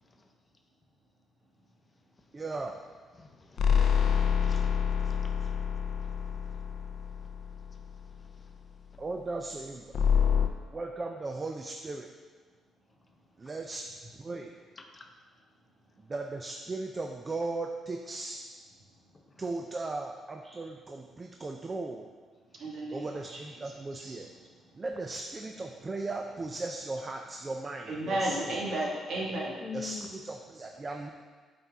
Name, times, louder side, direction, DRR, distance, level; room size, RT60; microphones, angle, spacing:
voice 1, 2.3-2.8 9.0-9.9 10.3-10.4 10.7-12.1 13.4-14.5 16.0-18.5 19.4-22.1 22.9-24.3 24.7-28.6 29.7-31.1, right 3 dB, 30° right, 0.5 m, -37 dB
voice 2, 3.2-3.7 4.4-4.7 5.0-5.5 14.8-15.1 19.3-19.4 29.6-30.1, left 6 dB, 30° left, 0.8 m, -44 dB
sound 1, 3.6-8.1 9.9-10.5, left 7 dB, 65° left, 0.5 m, -27 dB
voice 3, 22.5-23.1 23.9-24.2 27.9-29.6, right 1 dB, 65° right, 1.6 m, -33 dB
8.4 x 4.3 x 3.5 m
cardioid pair, 90°, 0 cm